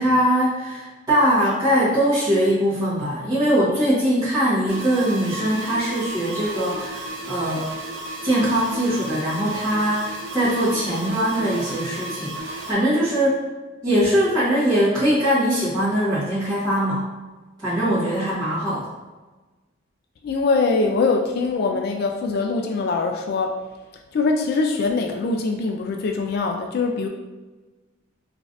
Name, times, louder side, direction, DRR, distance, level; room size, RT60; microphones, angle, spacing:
voice 1, 0.0-7.7 8.2-12.3 12.7-13.4 13.8-17.1 17.6-18.9, equal, 20° right, -12 dB, 1.1 m, -21 dB
sound 1, 4.7-12.7, right 2 dB, 80° right, 0.8 m, -33 dB
voice 2, 20.2-23.5 24.1-27.1, left 3 dB, 55° left, 3 dB, 0.3 m, -22 dB
5.0 x 2.5 x 2.5 m, 1.2 s
head